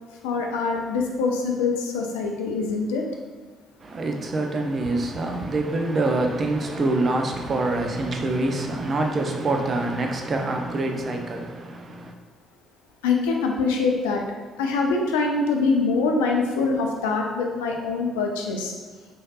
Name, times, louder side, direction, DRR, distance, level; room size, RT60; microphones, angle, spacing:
voice 1, 0.2-3.0 13.0-14.2 14.6-18.7, left 4 dB, 75° left, 1 dB, 0.3 m, -24 dB
voice 2, 3.8-12.1, right 2 dB, 40° right, 2 dB, 0.4 m, -25 dB
3.1 x 2.7 x 2.3 m, 1.4 s
figure-of-eight pair, 45°, 0 cm